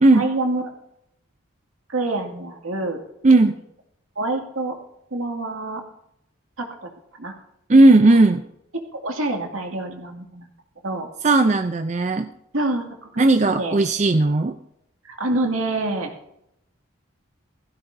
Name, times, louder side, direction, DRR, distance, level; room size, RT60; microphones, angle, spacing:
voice 1, 0.1-0.7 1.9-3.0 4.2-4.8 5.1-5.8 6.6-7.3 8.9-10.5 10.8-11.1 12.5-13.7 15.0-16.1, right 2 dB, 80° right, 2 dB, 2.3 m, -27 dB
voice 2, 3.2-3.5 7.7-8.4 11.2-12.3 13.2-14.6, right 2 dB, 35° right, 7 dB, 0.5 m, -15 dB
17.0 x 15.5 x 2.7 m, 0.77 s
head